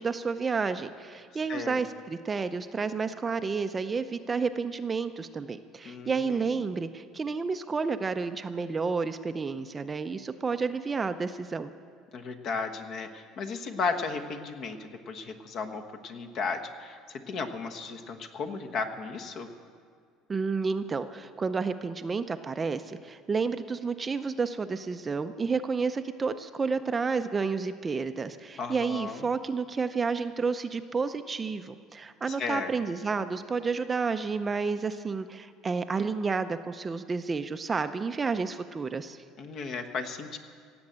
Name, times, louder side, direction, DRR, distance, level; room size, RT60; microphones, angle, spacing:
voice 1, 0.0-11.7 20.3-39.2, right 4 dB, 20° right, 10 dB, 0.5 m, -30 dB
voice 2, 1.5-1.8 5.8-6.5 12.1-19.5 28.6-29.2 32.3-32.7 39.4-40.4, left 4 dB, 50° left, 5 dB, 1.2 m, -35 dB
17.0 x 7.9 x 8.6 m, 2.1 s
cardioid pair, 135°, 0 cm